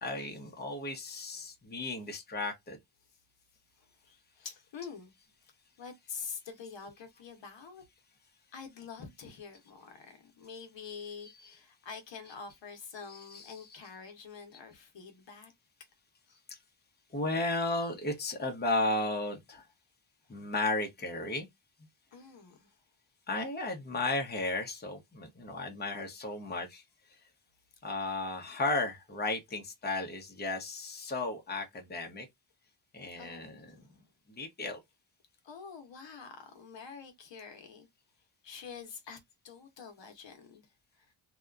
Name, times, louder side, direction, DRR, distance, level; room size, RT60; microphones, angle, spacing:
voice 1, 0.0-2.8 13.1-13.8 16.5-16.6 17.1-19.7 20.3-21.5 23.3-26.8 27.8-32.3 32.9-33.8 34.4-34.8, left 2 dB, 20° left, 0.8 m, -34 dB
voice 2, 3.8-5.1 5.8-7.8 8.5-15.5 16.3-16.4 20.3-20.4 22.1-22.7 29.5-29.6 33.0-33.9 35.4-37.9 38.4-40.7 41.0-41.1, left 6 dB, 60° left, 0.9 m, -47 dB
2.8 x 2.2 x 2.3 m
wide cardioid pair, 110°, 48 cm